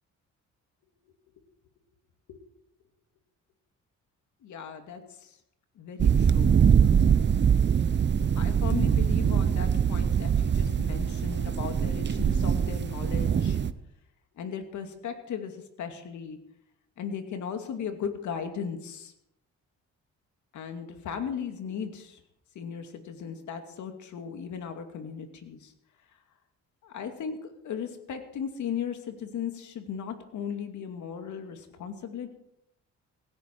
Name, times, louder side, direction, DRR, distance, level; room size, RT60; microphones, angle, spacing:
voice 1, 4.4-5.4 5.8-6.6 8.4-13.6 14.4-16.4 17.0-19.1 20.5-22.2 22.5-25.7 26.8-32.3, left 7 dB, 75° left, 6 dB, 2.4 m, -37 dB
sound 1, 6.0-13.7, right 7 dB, 35° right, 0.8 m, -23 dB
17.0 x 15.5 x 4.7 m, 0.79 s
cardioid pair, 90°, 30 cm